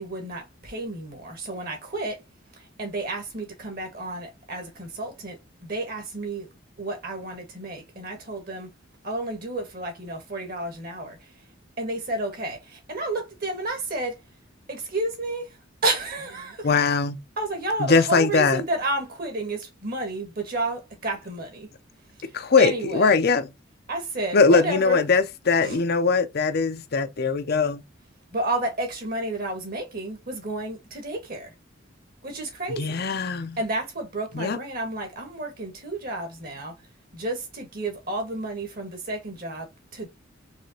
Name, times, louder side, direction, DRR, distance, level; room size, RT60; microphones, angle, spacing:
voice 1, 0.0-2.2 2.5-6.5 6.8-8.7 9.0-11.5 11.8-14.2 14.7-16.7 17.4-21.7 22.1-23.2 23.9-25.1 25.6-25.8 28.3-31.5 32.2-33.1 33.6-36.8 37.1-40.1, right 2 dB, 50° right, 1.8 m, -31 dB
voice 2, 16.6-17.2 17.8-18.6 22.3-23.5 24.3-27.8 32.8-33.6 34.3-34.6, left 4 dB, 55° left, 0.6 m, -21 dB
4.9 x 3.3 x 2.8 m
head